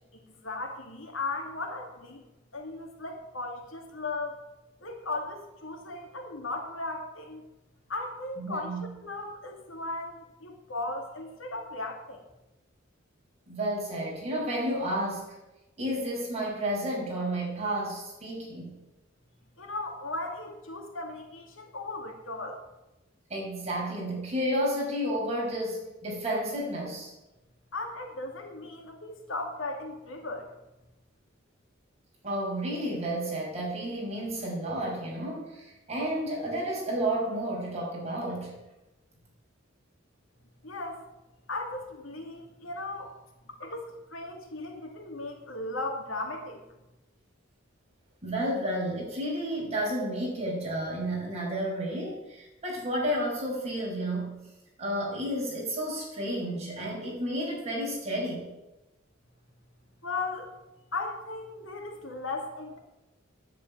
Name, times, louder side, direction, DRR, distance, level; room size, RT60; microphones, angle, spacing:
voice 1, 0.1-2.2 2.5-4.4 4.8-7.4 7.9-8.7 9.0-12.2 19.6-22.6 27.7-30.5 40.6-41.0 41.5-43.1 43.6-46.6 60.0-60.5 60.9-62.8, left 2 dB, 80° left, 3 dB, 2.4 m, -36 dB
voice 2, 8.4-8.9 13.5-15.3 15.8-18.7 23.3-27.1 32.2-38.5 48.2-54.3 54.8-58.5, right 1 dB, 35° right, -3 dB, 6.2 m, -31 dB
10.5 x 8.4 x 9.5 m, 0.99 s
head